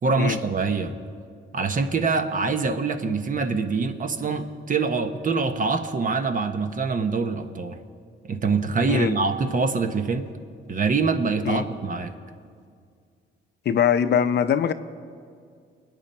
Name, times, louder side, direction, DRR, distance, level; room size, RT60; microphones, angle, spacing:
voice 1, 0.0-0.9 1.5-7.8 8.2-10.3 10.7-12.1, right 4 dB, 40° right, 8 dB, 1.1 m, -24 dB
voice 2, 13.7-14.7, left 8 dB, 60° left, 11 dB, 0.7 m, -22 dB
25.0 x 9.3 x 4.4 m, 2.2 s
cardioid pair, 90°, 20 cm